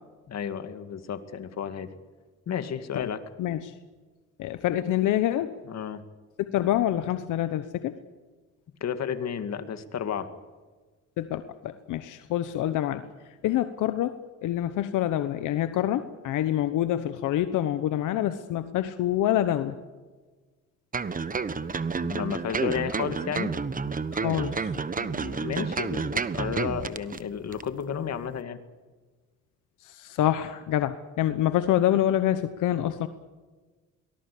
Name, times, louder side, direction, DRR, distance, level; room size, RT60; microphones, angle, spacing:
voice 1, 0.3-1.9 2.5-3.2 5.7-6.0 8.8-10.3 22.0-23.5 25.0-28.6, left 8 dB, 60° left, 10 dB, 2.2 m, -32 dB
voice 2, 3.4-3.7 4.4-5.5 6.5-8.0 11.2-13.0 13.4-19.8 24.1-24.7 29.8-33.1, left 12 dB, 85° left, 11 dB, 1.1 m, -26 dB
sound 1, 20.9-27.2 27.5-27.6, right 5 dB, 25° right, 1.1 m, -30 dB
23.0 x 19.0 x 8.6 m, 1.3 s
cardioid pair, 90°, 30 cm